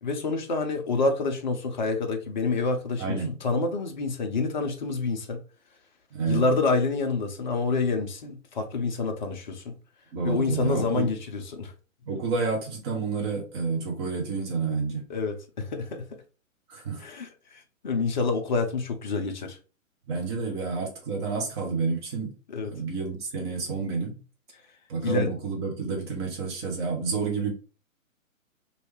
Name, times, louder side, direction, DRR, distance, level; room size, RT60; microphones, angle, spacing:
voice 1, 0.0-5.4 6.3-9.8 10.2-11.7 15.1-16.0 17.0-19.6 22.5-22.7 25.0-25.3, left 3 dB, 35° left, 0.6 m, -27 dB
voice 2, 3.0-3.4 6.1-6.5 10.1-11.1 12.1-15.0 16.7-17.0 20.1-22.3 22.7-24.1 24.9-27.5, right 4 dB, 20° right, 0.7 m, -29 dB
3.1 x 2.8 x 3.0 m
figure-of-eight pair, 125°, 40 cm